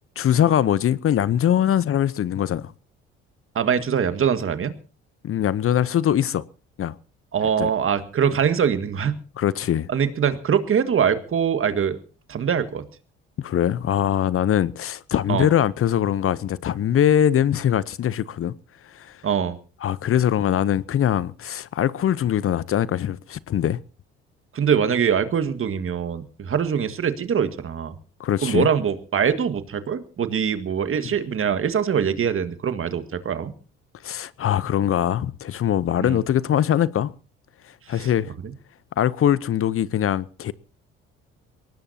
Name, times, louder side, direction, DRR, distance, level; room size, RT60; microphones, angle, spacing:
voice 1, 0.2-2.7 5.2-6.4 6.8-6.9 7.6-7.7 9.4-9.9 13.4-18.5 18.8-19.2 19.8-23.8 28.2-28.7 31.0-31.1 34.0-37.1 37.9-38.3 39.0-40.5, left 10 dB, 45° left, 0.8 m, -22 dB
voice 2, 3.6-4.7 7.3-9.2 9.9-12.0 12.3-12.9 15.3-15.5 19.2-19.6 24.5-28.0 28.4-33.5 36.0-36.2 38.0-38.1 38.4-38.5, right 7 dB, 45° right, 1.8 m, -23 dB
23.0 x 18.5 x 2.8 m
hypercardioid pair, 60°, 30 cm